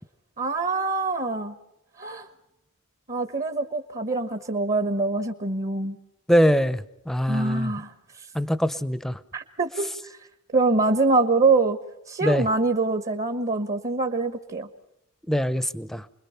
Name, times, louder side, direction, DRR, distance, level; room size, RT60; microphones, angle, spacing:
voice 1, 0.4-1.5 2.0-2.3 3.1-6.0 7.3-7.9 9.3-10.2 10.5-11.8 12.1-14.7, right 3 dB, 40° right, 8 dB, 1.2 m, -24 dB
voice 2, 6.3-7.7 8.3-9.2 12.2-12.5 15.3-16.0, equal, ahead, 15 dB, 0.7 m, -23 dB
29.5 x 21.5 x 5.8 m, 0.88 s
head